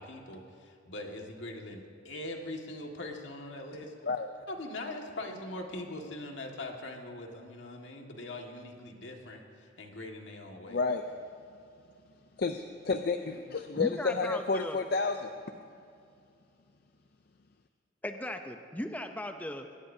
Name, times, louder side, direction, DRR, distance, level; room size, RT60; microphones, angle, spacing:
voice 1, 0.0-3.9 4.5-10.8, left 1 dB, 85° left, 1 dB, 1.8 m, -42 dB
voice 2, 10.7-11.0 12.4-15.3, left 4 dB, 55° left, 7 dB, 0.5 m, -30 dB
voice 3, 13.8-14.8 18.0-19.8, left 1 dB, 10° left, 6 dB, 0.6 m, -37 dB
21.5 x 17.5 x 2.8 m, 2.4 s
head